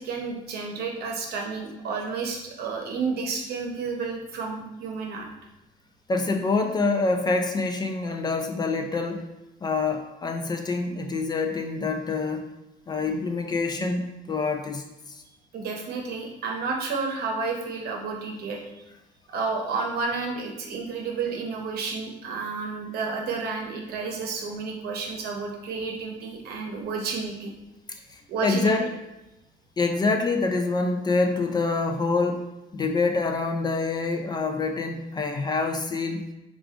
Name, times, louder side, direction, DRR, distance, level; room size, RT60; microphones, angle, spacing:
voice 1, 0.0-5.3 15.5-18.8 19.3-27.5 28.3-28.9, right 4 dB, 70° right, 1 dB, 0.8 m, -31 dB
voice 2, 6.1-9.3 9.6-12.5 12.9-15.2 27.9-28.9 29.8-32.5 32.7-36.3, left 3 dB, 25° left, 4 dB, 0.4 m, -26 dB
3.5 x 2.4 x 3.5 m, 0.95 s
cardioid pair, 110°, 17 cm